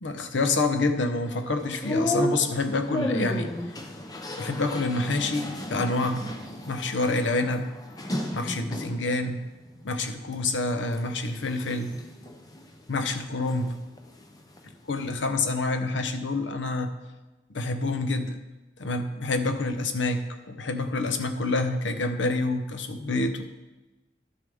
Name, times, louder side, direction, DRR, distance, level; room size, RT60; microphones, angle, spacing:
voice 1, 0.0-3.5 4.4-7.7 8.3-9.5 9.8-11.9 12.9-13.7 14.9-16.9 17.5-18.4 18.8-23.4, left 2 dB, 90° left, 8 dB, 0.8 m, -27 dB
sound 1, 1.3-9.1 9.6-10.4 10.8-13.7 14.0-15.2, left 1 dB, 20° left, 0.7 m, -34 dB
11.5 x 6.8 x 3.5 m, 1.1 s
head